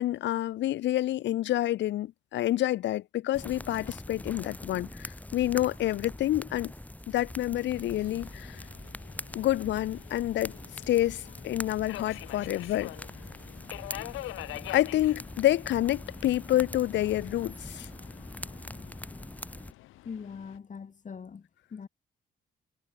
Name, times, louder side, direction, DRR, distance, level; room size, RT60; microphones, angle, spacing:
voice 1, 0.0-6.7 7.1-8.6 9.3-10.6 10.9-12.9 14.7-17.9, left 14 dB, 65° left, 0.5 m, -28 dB
sound 1, 3.3-19.7, left 1 dB, 5° left, 2.2 m, -43 dB
sound 2, 5.4-6.4 6.7-7.7 7.9-11.4 11.7-12.7 12.9-14.8, right 2 dB, 10° right, 3.0 m, -58 dB
Subway metro underground, 7.7-20.6, left 16 dB, 90° left, 1.1 m, -46 dB
voice 2, 20.0-21.9, left 6 dB, 40° left, 2.9 m, -42 dB
cardioid pair, 90°, 20 cm